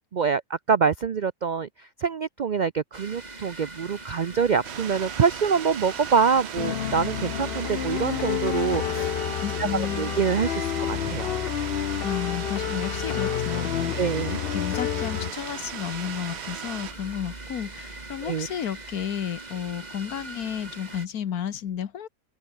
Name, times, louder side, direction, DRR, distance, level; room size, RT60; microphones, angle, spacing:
voice 1, 0.1-1.7 2.0-9.1 9.6-9.7 10.0-11.3 14.0-14.4 18.3-18.5, right 6 dB, 85° right, 0.4 m, -25 dB
sound 1, 2.9-21.1, right 2 dB, 25° right, 2.4 m, -41 dB
sound 2, 4.6-16.9, right 11 dB, 60° right, 0.7 m, -38 dB
sound 3, 6.6-15.3, left 10 dB, 55° left, 0.6 m, -29 dB
voice 2, 9.4-10.2 12.0-22.1, left 9 dB, 75° left, 1.6 m, -32 dB
omnidirectional pair, 1.6 m